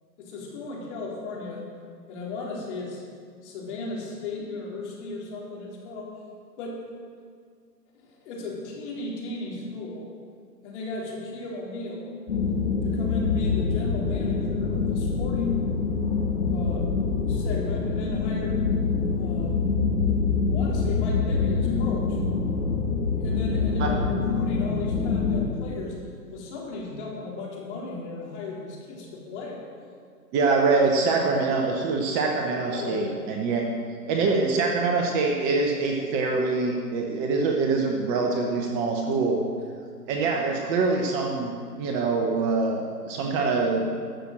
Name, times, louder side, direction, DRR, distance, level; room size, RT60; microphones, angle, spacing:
voice 1, 0.2-1.7 2.1-3.0 3.4-6.2 6.6-6.8 7.9-10.1 10.6-12.1 12.8-15.6 16.4-16.9 17.3-18.7 19.1-19.6 20.5-22.2 23.2-26.0 26.3-29.6 32.7-33.1 33.6-33.7, left 3 dB, 45° left, -3 dB, 3.7 m, -36 dB
sound 1, 12.3-25.4, left 4 dB, 75° left, 2.1 m, -25 dB
voice 2, 30.3-33.7 34.0-39.4 40.1-41.5 41.8-43.9, right 3 dB, 20° right, 1 dB, 0.9 m, -24 dB
13.5 x 6.1 x 7.6 m, 2.1 s
hypercardioid pair, 135°, 49 cm